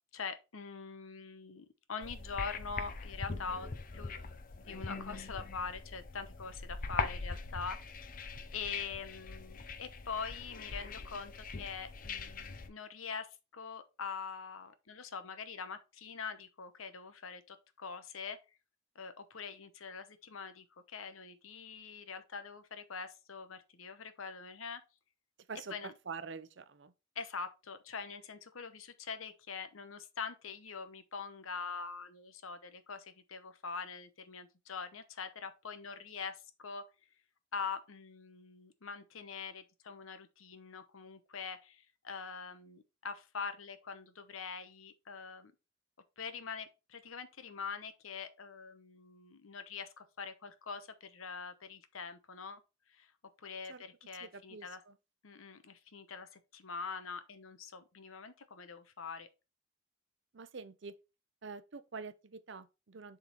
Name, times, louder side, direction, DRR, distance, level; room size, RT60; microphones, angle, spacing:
voice 1, 0.1-4.2 4.6-7.8 8.5-18.4 18.9-24.8 25.7-25.9 27.1-36.8 37.5-45.5 46.2-52.6 52.9-53.1 53.4-54.8 55.2-59.3, left 5 dB, 80° left, 0.9 m, -44 dB
sound 1, 2.0-12.7, left 4 dB, 40° left, 0.6 m, -42 dB
voice 2, 26.1-26.9 53.7-53.8 54.5-54.7 60.3-60.9 61.4-63.2, right 5 dB, 60° right, 0.6 m, -45 dB
7.3 x 3.8 x 4.0 m
head